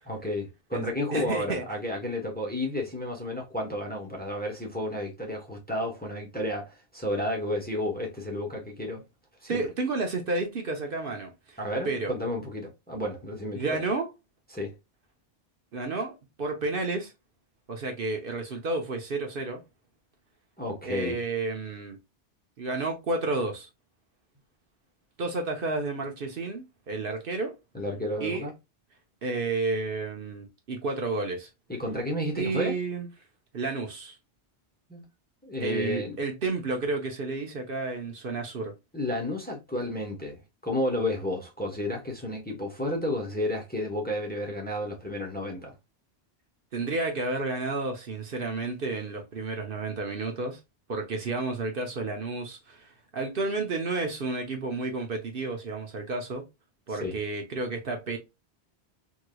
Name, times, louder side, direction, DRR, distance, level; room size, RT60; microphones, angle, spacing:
voice 1, 0.1-9.0 9.4-9.7 11.6-13.8 14.5-14.7 20.6-21.2 27.7-28.5 31.7-32.7 34.9-35.0 35.4-36.2 38.9-45.7 57.0-57.2, left 1 dB, 10° left, 0.9 m, -32 dB
voice 2, 0.7-1.6 9.5-11.6 11.8-12.1 13.5-14.1 15.7-17.1 17.7-19.6 20.8-22.0 22.6-23.7 25.2-27.6 28.2-28.5 29.2-31.5 32.4-33.1 33.5-34.2 35.6-38.7 46.7-50.6 50.9-56.4 56.9-58.2, right 3 dB, 60° right, 1.0 m, -31 dB
3.7 x 3.1 x 2.2 m
omnidirectional pair, 1.1 m